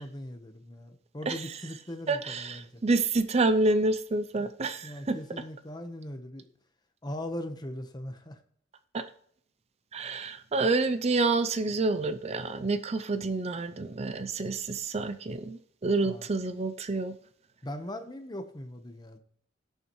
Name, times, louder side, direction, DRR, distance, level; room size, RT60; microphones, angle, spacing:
voice 1, 0.0-2.8 4.3-4.4 4.8-6.5 7.0-8.4 16.0-16.3 17.6-19.2, left 1 dB, 20° left, 1.1 m, -40 dB
voice 2, 2.1-5.2 8.9-9.1 9.9-17.2, right 3 dB, 35° right, 0.5 m, -28 dB
17.0 x 7.0 x 3.1 m
head